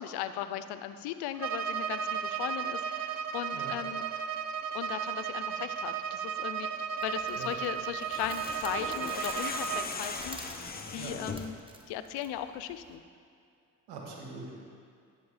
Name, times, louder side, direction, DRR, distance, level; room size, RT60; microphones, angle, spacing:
voice 1, 0.0-4.0 4.7-10.6 10.9-11.5 11.9-13.0, left 11 dB, 80° left, 11 dB, 0.5 m, -37 dB
Bowed string instrument, 1.3-9.9, right 7 dB, 45° right, 0.5 m, -34 dB
sound 1, 7.0-13.0, right 1 dB, 15° right, 0.9 m, -51 dB
sound 2, 8.0-11.6, left 4 dB, 25° left, 0.7 m, -39 dB
voice 2, 13.9-14.6, right 4 dB, 90° right, -1 dB, 1.3 m, -43 dB
9.9 x 4.5 x 4.9 m, 2.3 s
supercardioid pair, 60°, 39 cm